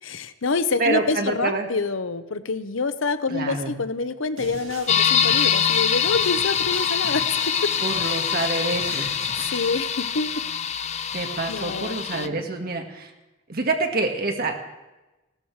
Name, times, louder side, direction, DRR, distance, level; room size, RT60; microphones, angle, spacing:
voice 1, 0.0-7.7 8.9-9.1 9.4-10.4 11.1-11.2 11.5-12.5, left 4 dB, 80° left, 12 dB, 0.9 m, -27 dB
voice 2, 0.8-1.7 3.3-3.8 7.8-9.2 11.1-13.1 13.5-14.7, right 3 dB, 50° right, 4 dB, 1.9 m, -27 dB
sound 1, 4.4-9.7, right 4 dB, 75° right, 2.1 m, -40 dB
sound 2, 4.9-12.3, left 8 dB, 35° left, 0.6 m, -24 dB
16.5 x 13.0 x 4.8 m, 1.1 s
head